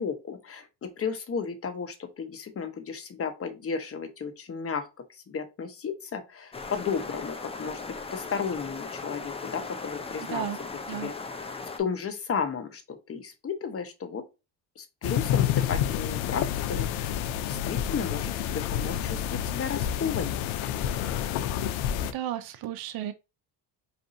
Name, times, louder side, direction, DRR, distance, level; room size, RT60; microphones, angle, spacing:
voice 1, 0.0-4.9 5.3-10.5 10.9-11.1 11.8-14.2 14.8-20.5, left 6 dB, 30° left, 0.8 m, -34 dB
sound 1, 6.5-11.8, left 4 dB, 15° left, 0.5 m, -38 dB
voice 2, 10.2-10.6 10.9-11.1 22.0-23.1, right 11 dB, 55° right, 0.5 m, -34 dB
sound 2, 15.0-22.1, left 10 dB, 85° left, 0.6 m, -29 dB
5.1 x 2.6 x 2.6 m
cardioid pair, 115°, 45 cm